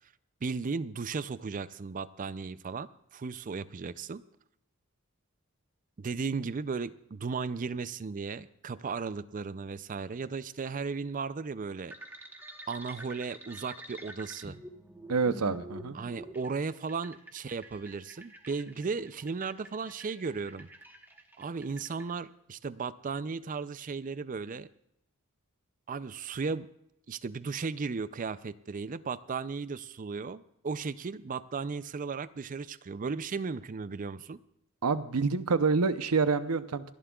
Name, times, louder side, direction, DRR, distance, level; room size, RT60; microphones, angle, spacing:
voice 1, 0.4-4.2 6.0-11.9 12.7-14.6 15.9-20.7 21.4-24.7 25.9-26.7 27.1-34.4, right 4 dB, 35° right, 15 dB, 0.4 m, -35 dB
sound 1, 11.9-22.1, right 1 dB, 10° right, 1.2 m, -48 dB
voice 2, 15.1-16.0 34.8-36.9, right 4 dB, 85° right, 12 dB, 0.7 m, -27 dB
27.5 x 11.0 x 2.4 m, 0.78 s
head